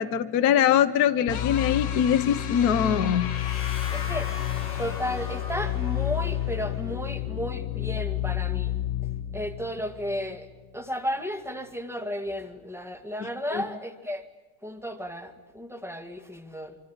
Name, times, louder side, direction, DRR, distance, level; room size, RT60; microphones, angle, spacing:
voice 1, 0.0-3.3 13.5-13.6, left 9 dB, 80° left, 9 dB, 0.8 m, -22 dB
sound 1, 1.3-10.4, left 12 dB, 60° left, 1.2 m, -30 dB
sound 2, 3.2-7.0, left 3 dB, 20° left, 2.8 m, -42 dB
voice 2, 3.9-4.3 4.8-8.7 9.3-10.5 10.7-14.2 14.6-16.8, equal, ahead, 7 dB, 1.3 m, -33 dB
26.0 x 25.5 x 8.9 m, 1.2 s
omnidirectional pair, 3.5 m